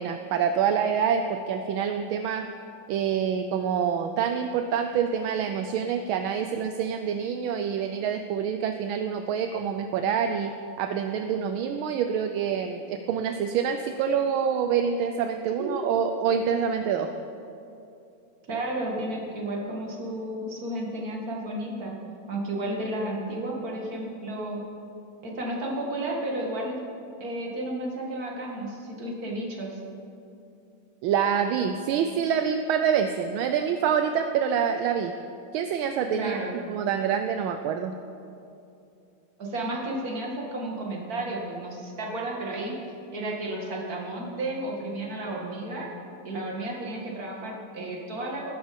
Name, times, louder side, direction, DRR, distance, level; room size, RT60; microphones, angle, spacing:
voice 1, 0.0-2.5 2.9-10.5 10.8-17.1 31.0-35.1 35.5-37.9, right 7 dB, 80° right, 7 dB, 1.4 m, -26 dB
voice 2, 18.5-21.9 22.3-24.6 25.2-26.8 27.2-29.8 36.1-36.5 39.4-42.7 43.1-45.9 46.2-48.5, right 1 dB, 45° right, -1 dB, 2.6 m, -32 dB
19.5 x 11.0 x 5.2 m, 2.7 s
omnidirectional pair, 2.3 m